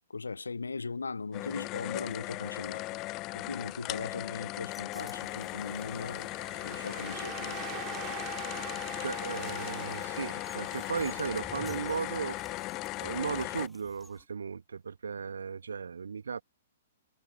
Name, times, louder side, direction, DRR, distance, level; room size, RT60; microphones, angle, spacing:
voice 1, 0.1-2.8 3.3-6.3 6.6-7.6, left 4 dB, 75° left, 0.8 m, -39 dB
sound 1, 1.3-13.7, left 21 dB, 30° left, 0.4 m, -38 dB
sound 2, 4.5-14.3, left 2 dB, 5° left, 2.5 m, -56 dB
Waves surf, 4.9-12.6, right 23 dB, 30° right, 3.4 m, -45 dB
voice 2, 9.0-12.4 13.0-16.4, right 6 dB, 65° right, 2.4 m, -36 dB
figure-of-eight pair, 110°, 0 cm